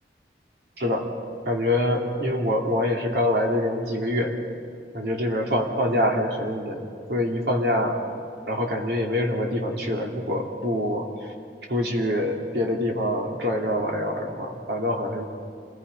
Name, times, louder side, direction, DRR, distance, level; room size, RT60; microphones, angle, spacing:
voice 1, 0.8-1.1 1.4-4.4 4.9-8.0 8.5-11.3 11.7-15.2, left 1 dB, 70° right, 0 dB, 3.0 m, -25 dB
27.5 x 19.5 x 5.5 m, 2.4 s
head